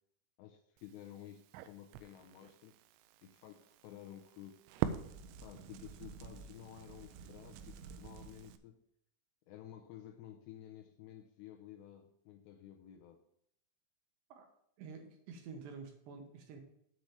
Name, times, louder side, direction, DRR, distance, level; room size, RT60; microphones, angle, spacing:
voice 1, 0.4-2.7 3.2-4.6 5.4-8.8 9.5-13.2, left 11 dB, 80° left, 4 dB, 2.6 m, -53 dB
Crackle, 0.8-8.6, right 10 dB, 90° right, 3.1 m, -45 dB
voice 2, 14.8-16.6, right 5 dB, 70° right, 4 dB, 3.0 m, -49 dB
7.8 x 5.0 x 7.3 m, 0.73 s
omnidirectional pair, 5.6 m